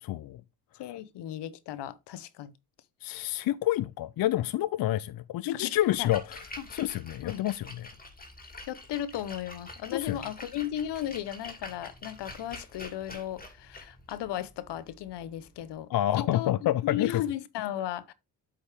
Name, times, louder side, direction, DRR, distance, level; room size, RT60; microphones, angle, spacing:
voice 1, 0.0-0.4 3.0-6.4 6.7-7.9 9.9-10.2 15.9-17.1, left 14 dB, 55° left, 0.5 m, -28 dB
voice 2, 0.8-2.5 5.5-5.7 6.0-6.1 6.6-6.7 7.2-7.4 8.7-15.9 16.2-18.1, left 11 dB, 75° left, 0.9 m, -35 dB
Splash splatter, 5.8-15.7, left 2 dB, 20° left, 2.4 m, -47 dB
8.3 x 5.1 x 3.4 m
supercardioid pair, 65°, 42 cm